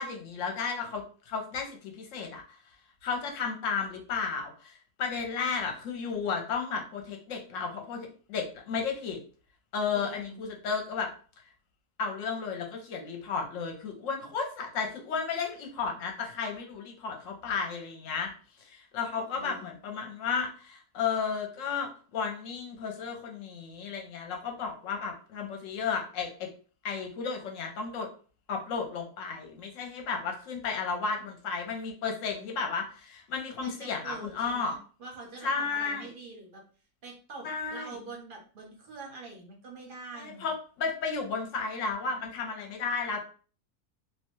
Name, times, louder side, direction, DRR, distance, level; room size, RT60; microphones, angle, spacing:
voice 1, 0.0-2.6 3.0-9.2 9.7-11.1 12.0-18.3 18.7-26.5 26.8-28.1 28.5-34.7 35.4-36.0 37.4-37.9 40.2-43.2, left 5 dB, 65° left, 2 dB, 0.9 m, -33 dB
voice 2, 9.9-10.4 19.2-19.8 33.6-36.6 37.0-40.5, right 3 dB, 45° right, 0 dB, 0.7 m, -45 dB
2.7 x 2.2 x 3.0 m, 0.39 s
omnidirectional pair, 1.6 m